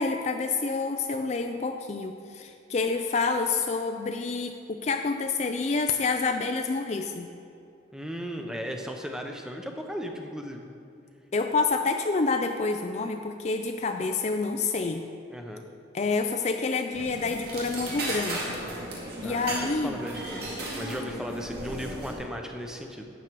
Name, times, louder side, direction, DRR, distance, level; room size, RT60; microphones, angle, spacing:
voice 1, 0.0-7.3 11.3-15.0 15.9-18.6 19.2-20.0, left 4 dB, 35° left, 6 dB, 0.4 m, -28 dB
voice 2, 7.9-10.7 15.3-15.7 19.2-23.0, equal, 5° right, 3 dB, 0.7 m, -36 dB
sound 1, 16.9-22.1, right 1 dB, 50° right, 2.2 m, -35 dB
11.5 x 8.2 x 4.6 m, 2.6 s
head